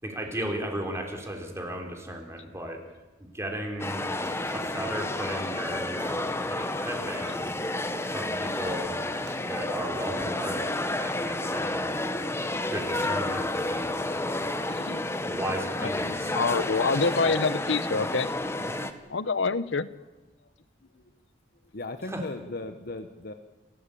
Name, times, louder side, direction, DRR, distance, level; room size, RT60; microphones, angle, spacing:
voice 1, 0.0-2.8 3.2-4.0 4.5-7.5 8.0-8.9 9.4-12.0 12.7-14.4 15.2-16.3 22.0-22.2, right 1 dB, 15° right, 2 dB, 3.5 m, -35 dB
sound 1, 3.8-18.9, left 1 dB, 15° left, 1.2 m, -30 dB
Crackle, 4.2-9.4, right 2 dB, 90° right, 6.1 m, -54 dB
voice 2, 16.0-18.3 19.1-19.9, left 4 dB, 80° left, 16 dB, 0.9 m, -26 dB
voice 3, 18.6-19.2 20.9-21.0 21.7-23.3, left 2 dB, 55° left, 8 dB, 1.1 m, -38 dB
29.0 x 13.0 x 8.5 m, 1.1 s
head